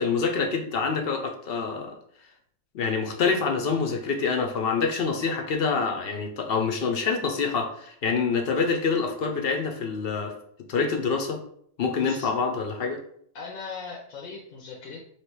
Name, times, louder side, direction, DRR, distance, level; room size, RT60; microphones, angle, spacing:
voice 1, 0.0-1.9 2.7-10.3 10.7-11.4 11.8-13.0, left 5 dB, 55° left, 3 dB, 0.7 m, -26 dB
voice 2, 12.0-12.3 13.3-15.0, left 5 dB, 85° left, 0 dB, 1.2 m, -39 dB
3.2 x 2.9 x 4.5 m, 0.66 s
omnidirectional pair, 1.4 m